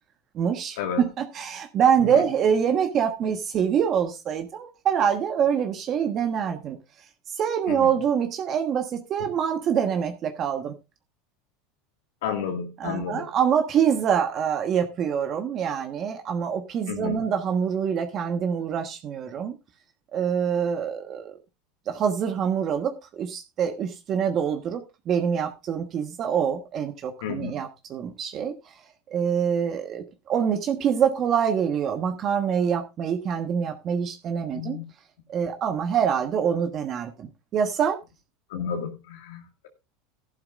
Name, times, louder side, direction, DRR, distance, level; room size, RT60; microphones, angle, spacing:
voice 1, 0.3-6.8 7.3-10.7 12.8-19.5 20.1-21.3 21.9-28.7 29.1-34.8 35.3-38.0, right 7 dB, 40° right, 1.2 m, -25 dB
voice 2, 12.2-13.3 16.9-17.2 27.2-27.6 34.5-34.8 38.5-39.7, left 7 dB, 80° left, 1.9 m, -32 dB
14.5 x 11.5 x 2.5 m
supercardioid pair, 120°, 0 cm